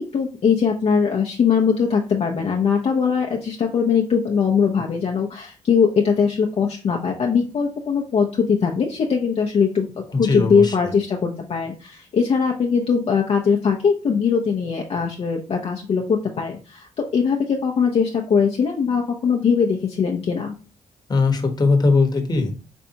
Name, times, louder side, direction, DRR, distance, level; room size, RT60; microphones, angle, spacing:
voice 1, 0.0-16.9 17.1-20.5, left 6 dB, 55° left, 0 dB, 0.7 m, -21 dB
voice 2, 10.1-10.9 21.1-22.5, left 3 dB, 35° left, 3 dB, 1.1 m, -20 dB
5.3 x 3.3 x 2.8 m, 0.36 s
cardioid pair, 75°, 13 cm